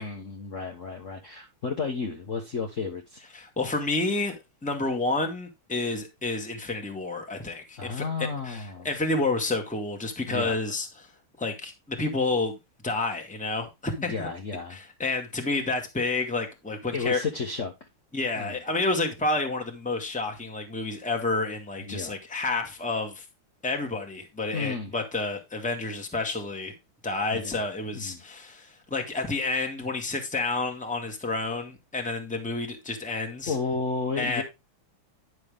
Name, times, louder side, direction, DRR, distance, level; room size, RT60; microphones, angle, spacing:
voice 1, 0.0-3.2 7.8-8.9 10.3-10.6 14.0-14.8 16.9-17.7 18.4-18.6 21.8-22.2 24.5-24.9 27.3-27.6 27.9-28.2 33.5-34.4, left 4 dB, 40° left, 1.4 m, -32 dB
voice 2, 3.3-11.1 11.4-12.6 12.8-14.3 14.7-17.2 18.1-23.2 23.6-26.7 27.0-33.5 34.2-34.4, left 3 dB, 5° left, 1.6 m, -30 dB
10.5 x 6.4 x 3.5 m
omnidirectional pair, 2.3 m